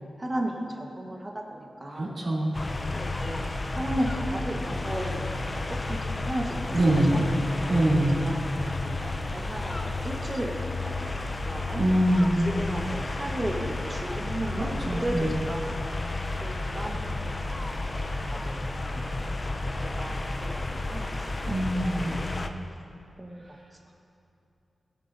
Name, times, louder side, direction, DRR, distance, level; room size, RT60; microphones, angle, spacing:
voice 1, 0.2-2.2 2.9-3.4 3.7-6.7 7.1-7.3 7.5-7.9 8.2-8.5 8.8-10.5 10.8-11.8 12.6-15.9 16.4-19.1 19.5-21.1 21.5-22.2 23.2-23.5, right 1 dB, 25° right, 0 dB, 1.3 m, -35 dB
voice 2, 1.9-2.5 6.7-7.3 7.7-8.2 11.7-12.5 14.5-15.3 21.5-22.2, right 1 dB, 70° right, -9 dB, 2.9 m, -24 dB
sound 1, 2.5-22.5, left 2 dB, 30° left, 0.6 m, -32 dB
18.5 x 9.0 x 2.7 m, 2.7 s
wide cardioid pair, 100°, 0 cm